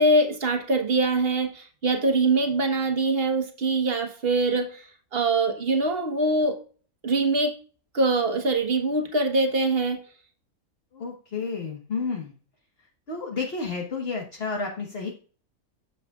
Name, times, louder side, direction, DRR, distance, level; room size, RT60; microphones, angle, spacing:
voice 1, 0.0-6.6 7.0-7.6 7.9-10.0, right 2 dB, 40° right, 1.4 m, -23 dB
voice 2, 10.9-12.3 13.1-15.2, left 4 dB, 45° left, 1.5 m, -31 dB
9.9 x 7.2 x 2.4 m
omnidirectional pair, 1.6 m